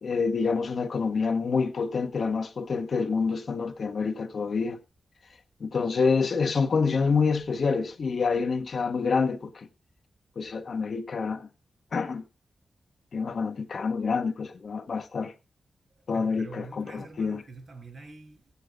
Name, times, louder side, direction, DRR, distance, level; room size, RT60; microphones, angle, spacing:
voice 1, 0.0-4.8 5.6-9.7 10.4-11.5 11.9-12.2 13.1-15.3 16.1-17.4, left 5 dB, 65° left, 1.1 m, -27 dB
voice 2, 16.0-18.5, right 3 dB, 55° right, 6.0 m, -45 dB
16.5 x 8.6 x 3.8 m
cardioid pair, 60°, 0 cm